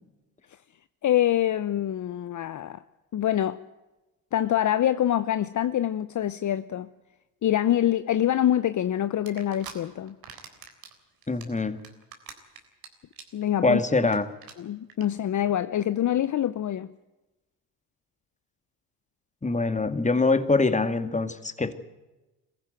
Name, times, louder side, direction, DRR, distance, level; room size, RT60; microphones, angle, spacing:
voice 1, 1.0-2.8 3.1-3.6 4.3-6.9 7.4-10.2 13.3-13.8 14.6-16.9, left 11 dB, 50° left, 0.8 m, -25 dB
sound 1, 9.3-9.7 10.1-10.9 11.2-12.9 13.1-13.4 13.7-13.8 14.0-14.2 14.4-14.5 14.9-15.0, right 7 dB, 65° right, 3.9 m, -43 dB
voice 2, 11.3-11.8 13.6-14.3 19.4-21.7, left 3 dB, 20° left, 2.1 m, -24 dB
22.5 x 15.0 x 9.2 m
supercardioid pair, 70°, 38 cm